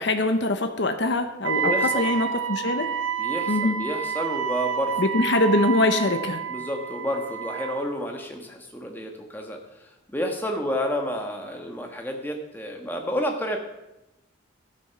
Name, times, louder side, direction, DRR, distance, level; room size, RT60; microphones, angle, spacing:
voice 1, 0.0-2.9 3.5-3.8 5.0-6.4, left 2 dB, 55° left, 7 dB, 0.8 m, -23 dB
Wind instrument woodwind instrument, 1.4-7.9, right 7 dB, 80° right, 0.8 m, -29 dB
voice 2, 1.5-2.1 3.2-5.0 6.5-13.6, equal, 10° left, 2 dB, 1.3 m, -30 dB
13.0 x 7.1 x 5.9 m, 0.94 s
head